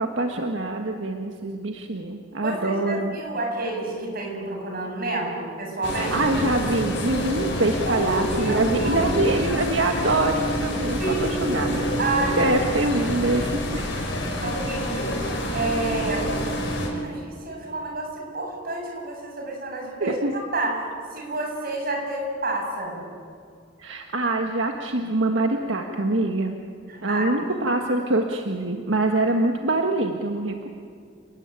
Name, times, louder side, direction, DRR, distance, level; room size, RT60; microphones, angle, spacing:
voice 1, 0.0-3.2 6.0-11.9 12.4-13.9 20.0-20.3 23.8-26.6 27.0-30.7, right 2 dB, 80° right, 4 dB, 1.6 m, -24 dB
voice 2, 2.4-6.2 7.9-9.1 11.0-11.4 12.0-12.5 14.4-15.1 15.5-16.3 16.8-23.0 26.9-27.3, right 2 dB, 50° right, 1 dB, 7.1 m, -29 dB
sound 1, 5.8-16.9, equal, 65° left, 5.9 m, -27 dB
29.5 x 19.0 x 9.1 m, 2.3 s
head